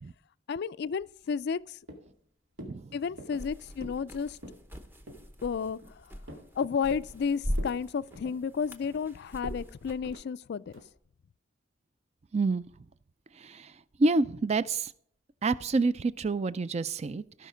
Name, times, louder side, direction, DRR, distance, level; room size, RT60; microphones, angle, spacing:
voice 1, 0.5-1.8 2.9-4.4 5.4-5.8 6.6-10.8, left 6 dB, 55° left, 0.3 m, -32 dB
sound 1, 1.0-1.6 1.9-2.2 2.6-2.8 3.2-3.5 3.8-4.1 4.3-4.7 5.1-5.3 5.7-6.5 6.9-7.2 7.5-7.8 8.1-9.0 9.4-9.6 10.0-10.2 10.7-11.0, equal, 80° right, 2.3 m, -46 dB
sound 2, 3.3-10.1, equal, 10° right, 0.8 m, -40 dB
voice 2, 12.3-12.6 13.4-13.7 14.0-14.9 15.4-17.5, right 3 dB, 35° right, 0.4 m, -28 dB
16.5 x 5.6 x 5.0 m
head